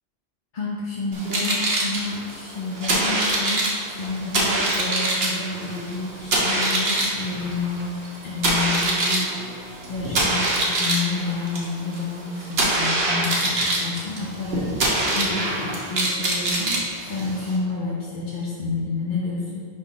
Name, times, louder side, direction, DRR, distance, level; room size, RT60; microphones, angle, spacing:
voice 1, 0.5-3.6 3.9-7.9 8.2-16.8 17.1-19.6, left 4 dB, 50° left, -6 dB, 1.0 m, -29 dB
sound 1, 1.1-17.6, right 2 dB, 65° right, 1.3 m, -24 dB
5.6 x 4.1 x 5.0 m, 2.3 s
omnidirectional pair, 1.1 m